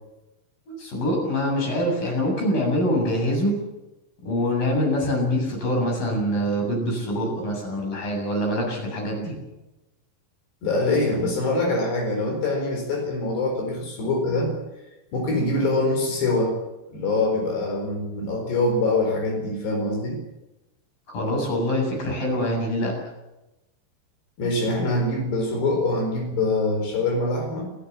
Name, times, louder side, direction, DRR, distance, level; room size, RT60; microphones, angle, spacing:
voice 1, 0.7-3.6 4.2-9.4 21.1-22.9, equal, 50° left, 1 dB, 9.2 m, -24 dB
voice 2, 10.6-14.6 15.1-16.6 16.9-20.2 24.4-27.6, left 2 dB, 70° left, 2 dB, 6.6 m, -24 dB
29.5 x 15.0 x 7.4 m, 0.99 s
omnidirectional pair, 5.0 m